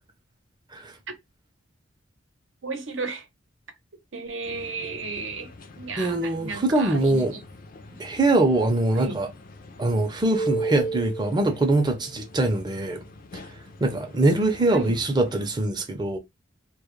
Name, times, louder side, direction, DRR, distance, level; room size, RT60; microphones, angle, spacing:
voice 1, 2.6-3.3 4.1-7.4 7.9-8.0 8.9-9.2 14.7-15.0, right 4 dB, 80° right, 0.8 m, -34 dB
sound 1, 4.4-15.4, right 3 dB, 45° left, 0.4 m, -38 dB
voice 2, 6.0-7.3 8.0-9.3 9.8-13.0 13.8-16.2, right 2 dB, 25° right, 0.5 m, -23 dB
2.2 x 2.1 x 3.0 m
head